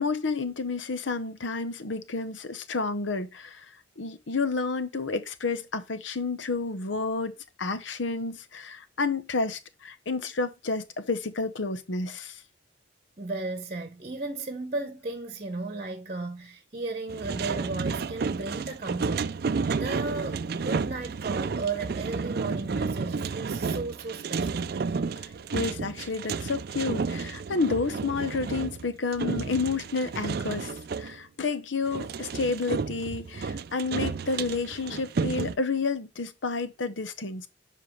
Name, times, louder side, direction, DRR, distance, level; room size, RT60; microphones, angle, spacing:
voice 1, 0.0-3.7 4.0-12.4 25.5-30.7 31.0-37.5, left 4 dB, 80° left, 0.9 m, -30 dB
voice 2, 13.2-24.7, right 3 dB, 35° right, 1.0 m, -35 dB
sound 1, 17.1-31.2 31.9-35.6, right 5 dB, 55° right, 0.4 m, -31 dB
7.5 x 5.5 x 3.1 m
head